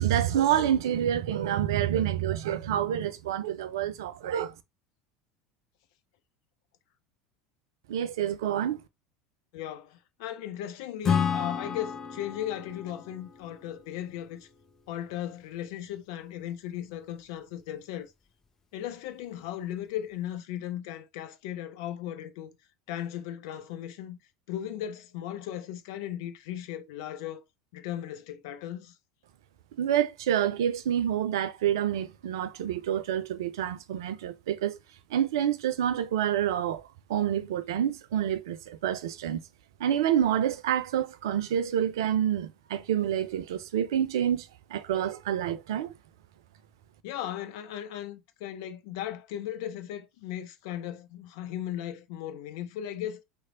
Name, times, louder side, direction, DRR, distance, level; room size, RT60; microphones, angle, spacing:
voice 1, 0.0-4.5 7.9-8.8 29.8-34.8 35.1-36.8 37.1-39.4 39.8-45.9, right 10 dB, 70° right, 0.4 m, -28 dB
voice 2, 9.5-14.5 14.9-18.1 18.7-22.5 22.9-24.2 24.5-27.4 27.7-28.9 47.0-53.2, left 11 dB, 60° left, 0.6 m, -37 dB
Acoustic guitar / Strum, 11.0-14.6, left 7 dB, 25° left, 0.8 m, -31 dB
3.1 x 2.0 x 3.6 m
figure-of-eight pair, 75°, 2 cm